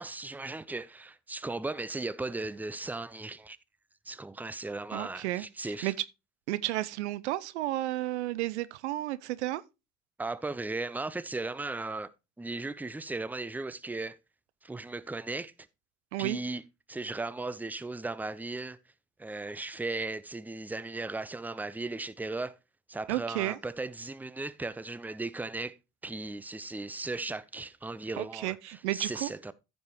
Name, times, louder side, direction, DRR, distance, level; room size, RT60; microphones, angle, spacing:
voice 1, 0.0-3.6 4.1-5.9 10.2-12.1 12.4-14.2 14.6-15.5 16.2-16.6 16.9-18.8 19.2-22.6 22.9-25.8 26.0-29.5, right 3 dB, 5° right, 0.6 m, -36 dB
voice 2, 4.9-5.9 6.5-9.6 16.1-16.4 23.1-23.6 28.2-29.3, right 16 dB, 80° right, 0.5 m, -32 dB
14.5 x 5.4 x 2.9 m
figure-of-eight pair, 50°, 34 cm